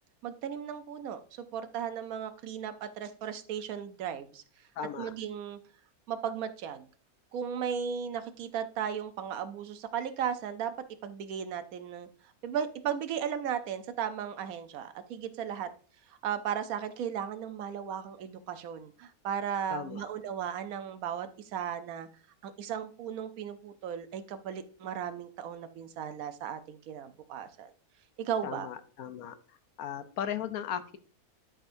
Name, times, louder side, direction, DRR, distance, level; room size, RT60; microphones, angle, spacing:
voice 1, 0.2-4.4 5.0-5.6 6.1-6.9 7.3-10.7 11.0-12.1 12.4-15.7 16.1-22.1 22.4-27.7 28.2-28.7, right 8 dB, 75° right, 10 dB, 1.2 m, -36 dB
voice 2, 4.8-5.1 19.7-20.1 28.4-29.4 29.8-31.0, left 9 dB, 75° left, 11 dB, 1.2 m, -37 dB
11.5 x 5.0 x 2.6 m, 0.40 s
omnidirectional pair, 1.6 m